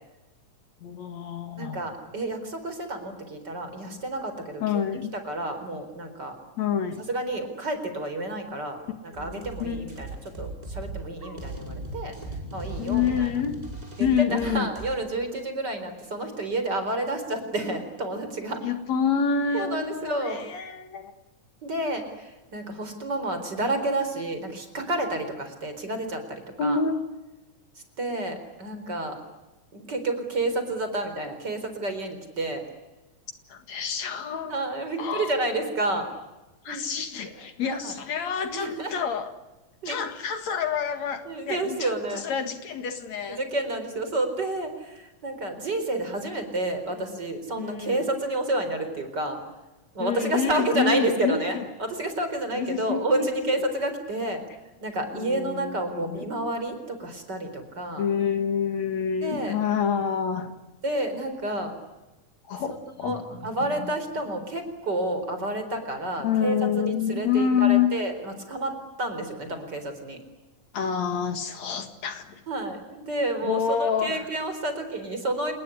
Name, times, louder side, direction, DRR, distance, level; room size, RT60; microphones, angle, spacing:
voice 1, 0.8-1.9 4.6-5.1 6.6-7.1 9.2-9.9 12.8-13.5 14.0-14.7 18.6-21.1 26.6-27.0 33.5-34.6 35.0-35.3 36.6-39.3 39.8-43.4 47.1-47.2 47.6-48.0 50.0-51.7 52.5-53.5 55.1-56.3 58.0-60.6 62.5-63.5 63.8-63.9 66.2-67.9 70.7-72.4 73.4-74.3, left 7 dB, 65° left, 8 dB, 3.1 m, -27 dB
voice 2, 1.6-4.8 5.2-6.4 7.1-12.2 12.5-13.3 14.0-18.6 19.5-20.4 21.6-26.8 28.0-29.2 29.7-32.6 34.5-36.1 36.7-36.8 37.2-37.3 37.7-37.9 38.5-39.0 39.8-40.0 41.3-42.2 43.3-49.4 49.9-54.4 54.8-58.1 59.2-59.6 60.8-61.7 62.7-62.8 63.0-66.6 66.9-70.2 72.5-75.5, right 2 dB, 35° right, 7 dB, 4.7 m, -30 dB
sound 1, 9.1-15.0, right 2 dB, 10° right, 5.7 m, -38 dB
28.0 x 20.5 x 9.9 m, 1.1 s
omnidirectional pair, 3.5 m